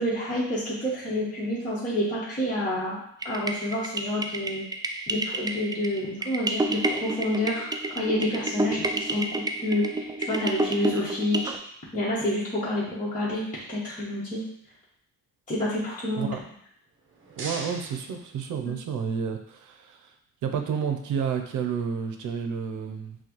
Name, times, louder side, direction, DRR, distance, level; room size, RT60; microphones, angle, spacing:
voice 1, 0.0-3.0 3.2-4.6 5.1-7.7 7.9-9.3 9.6-11.5 11.9-13.4 13.7-14.4 15.5-16.3, left 1 dB, 25° left, -8 dB, 1.2 m, -28 dB
sound 1, 3.2-11.6, right 2 dB, 15° right, 0.3 m, -30 dB
sound 2, 16.8-19.0, right 2 dB, 40° right, 0.8 m, -41 dB
voice 2, 17.4-20.1 20.4-23.2, right 7 dB, 80° right, 5 dB, 0.6 m, -30 dB
5.8 x 2.3 x 3.0 m, 0.70 s
cardioid pair, 90°, 30 cm